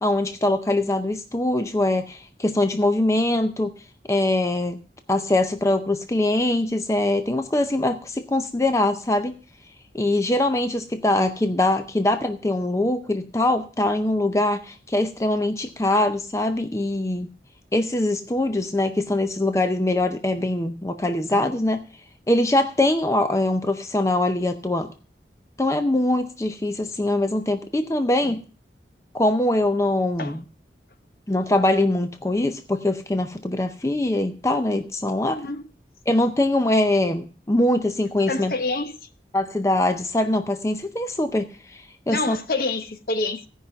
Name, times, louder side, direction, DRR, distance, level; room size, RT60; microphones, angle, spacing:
voice 1, 0.0-3.7 4.1-4.8 5.1-9.3 9.9-17.3 17.7-21.8 22.3-24.9 25.6-28.4 29.1-30.4 31.3-35.4 36.1-38.5 39.3-42.4, left 1 dB, 15° left, 0.5 m, -23 dB
voice 2, 38.3-38.9 42.1-43.4, left 2 dB, 55° left, 0.9 m, -27 dB
16.0 x 5.5 x 5.6 m
head